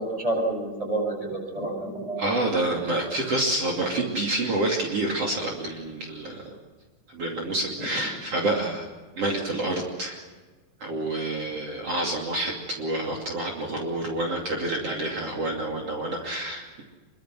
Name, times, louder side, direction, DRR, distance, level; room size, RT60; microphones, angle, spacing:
voice 1, 0.0-2.3, right 2 dB, 10° right, 2 dB, 6.9 m, -29 dB
voice 2, 2.2-6.4 7.1-8.9 9.2-10.2 10.8-16.8, right 2 dB, 45° right, 0 dB, 3.6 m, -28 dB
26.0 x 23.5 x 6.1 m, 1.3 s
omnidirectional pair, 3.9 m